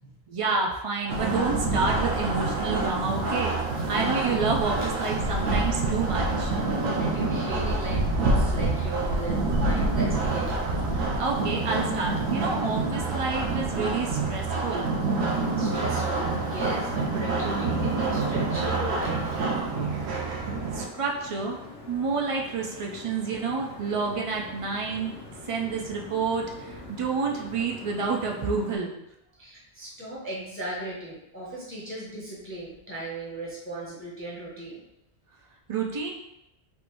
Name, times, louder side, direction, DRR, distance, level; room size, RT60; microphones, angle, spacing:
voice 1, 0.3-3.5 3.9-6.5 11.0-14.9 20.7-21.6 21.9-25.1 25.5-28.9 35.7-36.1, right 4 dB, 55° right, 0 dB, 0.3 m, -29 dB
sound 1, 1.1-20.9, right 3 dB, 80° right, 0.8 m, -27 dB
voice 2, 7.0-10.5 15.6-19.4 29.4-34.8, right 1 dB, 15° left, -6 dB, 0.6 m, -37 dB
sound 2, 11.1-28.8, left 3 dB, 80° left, 1.1 m, -44 dB
3.5 x 2.5 x 3.0 m, 0.90 s
omnidirectional pair, 1.1 m